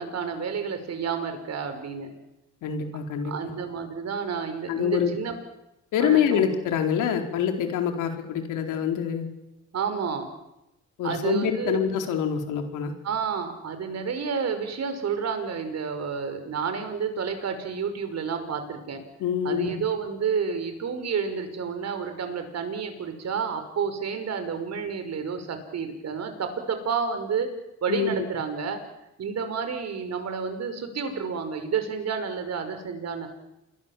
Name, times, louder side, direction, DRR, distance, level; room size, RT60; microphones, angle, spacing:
voice 1, 0.0-2.1 3.2-5.4 6.0-6.5 9.7-10.3 11.0-11.8 13.0-19.0 19.4-27.5 27.8-28.8 29.2-33.3, right 6 dB, 60° right, 8 dB, 5.5 m, -30 dB
voice 2, 2.6-3.5 4.7-5.1 5.9-9.3 11.0-12.9 19.2-19.7 27.9-28.1, left 8 dB, 90° left, 4 dB, 4.3 m, -25 dB
28.5 x 22.0 x 7.4 m, 0.92 s
cardioid pair, 90°, 30 cm